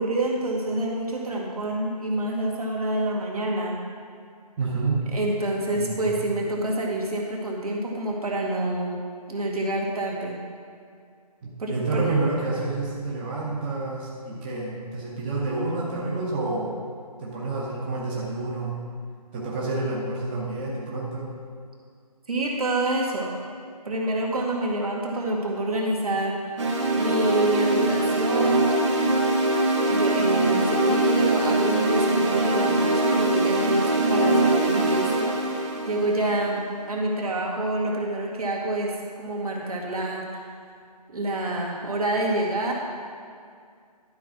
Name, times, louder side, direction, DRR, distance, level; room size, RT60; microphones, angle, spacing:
voice 1, 0.0-3.8 5.1-9.0 9.3-10.4 11.6-12.1 22.3-23.4 23.8-26.6 26.9-28.8 29.8-40.4 41.1-42.7, right 1 dB, 65° right, -2 dB, 2.1 m, -27 dB
voice 2, 4.6-5.1 5.7-6.2 11.4-16.8 17.2-18.8 19.3-21.3, right 3 dB, 15° right, -4 dB, 0.8 m, -29 dB
sound 1, 26.6-36.7, right 2 dB, 45° right, 1.5 m, -22 dB
12.0 x 4.7 x 6.0 m, 2.2 s
figure-of-eight pair, 155°, 20 cm